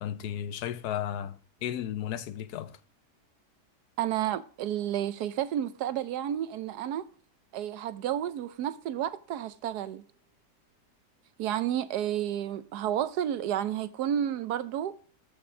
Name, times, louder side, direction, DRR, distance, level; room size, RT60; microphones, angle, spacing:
voice 1, 0.0-2.8, left 10 dB, 70° left, 1.2 m, -34 dB
voice 2, 4.0-7.1 7.5-10.0 11.4-15.0, right 10 dB, 75° right, 1.2 m, -31 dB
14.0 x 6.1 x 3.7 m
omnidirectional pair, 1.8 m